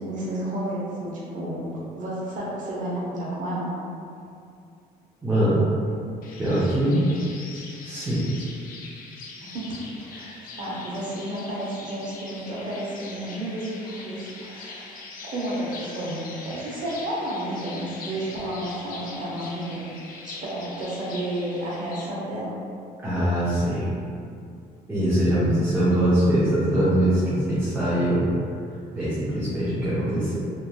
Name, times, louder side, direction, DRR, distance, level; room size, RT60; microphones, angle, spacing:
voice 1, 0.0-1.6 1.9-3.7 9.4-10.1 10.6-14.9 15.2-19.8 20.2-22.5, right 1 dB, 50° right, -6 dB, 0.8 m, -31 dB
voice 2, 5.2-5.6 6.4-7.0 7.8-8.2 10.1-10.4 23.0-23.9 24.9-28.3 28.9-30.4, right 1 dB, 10° right, -11 dB, 0.7 m, -22 dB
sound 1, 6.2-22.1, left 3 dB, 55° left, 0.4 m, -42 dB
3.0 x 2.5 x 2.2 m, 2.4 s
cardioid pair, 110°, 17 cm